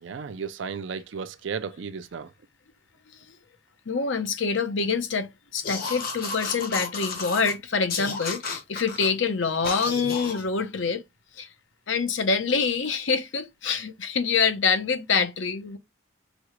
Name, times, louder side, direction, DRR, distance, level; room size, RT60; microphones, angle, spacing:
voice 1, 0.0-2.3, right 6 dB, 70° right, 0.4 m, -34 dB
voice 2, 3.9-11.0 11.4-11.5 11.9-15.8, left 5 dB, 70° left, 0.8 m, -26 dB
sound 1, 5.6-7.5 7.9-9.1 9.6-10.4, left 4 dB, 50° left, 1.1 m, -32 dB
6.1 x 2.3 x 3.0 m
head